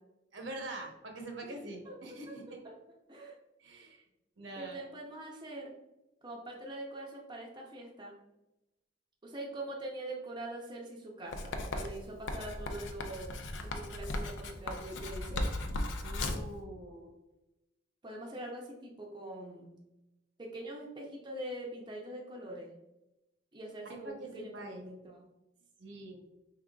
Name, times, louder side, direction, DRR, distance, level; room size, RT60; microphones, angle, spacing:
voice 1, 0.3-2.6 3.6-4.0 4.4-4.8 16.0-17.1 23.9-24.9 25.8-26.2, right 1 dB, 65° right, 2 dB, 0.9 m, -44 dB
voice 2, 1.4-2.0 2.6-2.7 3.1-3.3 4.6-5.7 6.2-8.1 9.2-13.4 13.7-15.5 18.0-19.8 20.4-22.7 23.5-25.2, right 1 dB, 25° right, -2 dB, 0.6 m, -43 dB
Writing, 11.3-16.5, left 1 dB, 70° left, 0.5 m, -37 dB
4.8 x 3.7 x 2.3 m, 0.95 s
head